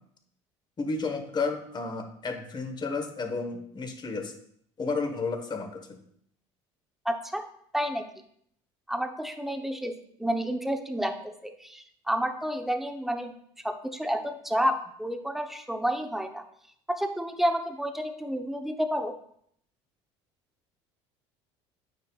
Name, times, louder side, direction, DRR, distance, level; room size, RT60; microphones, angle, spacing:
voice 1, 0.8-4.3 4.8-6.0, left 4 dB, 30° left, 6 dB, 1.2 m, -32 dB
voice 2, 7.0-7.5 7.7-8.1 8.9-9.9 10.2-13.3 13.6-16.4 16.9-19.1, equal, ahead, 6 dB, 0.8 m, -30 dB
9.3 x 4.4 x 2.4 m, 0.67 s
hypercardioid pair, 80°, 15 cm